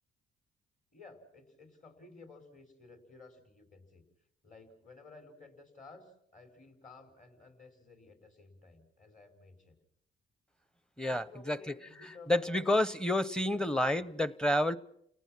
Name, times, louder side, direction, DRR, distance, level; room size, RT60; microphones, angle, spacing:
voice 1, 0.9-4.1 4.4-9.8 11.0-12.7 13.3-14.1, left 3 dB, 40° left, 5.7 m, -55 dB
voice 2, 11.0-11.6 12.3-14.8, left 1 dB, 5° left, 0.9 m, -29 dB
30.0 x 18.5 x 6.1 m
cardioid pair, 90°, 20 cm